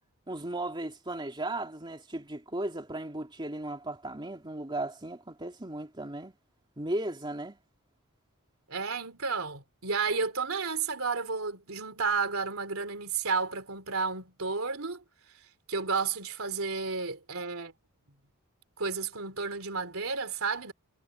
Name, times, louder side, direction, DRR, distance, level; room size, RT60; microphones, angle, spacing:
voice 1, 0.3-6.3 6.8-7.6, right 1 dB, 20° right, 2.8 m, -36 dB
voice 2, 8.7-15.0 15.7-17.7 18.8-20.7, right 4 dB, 65° right, 3.8 m, -32 dB
head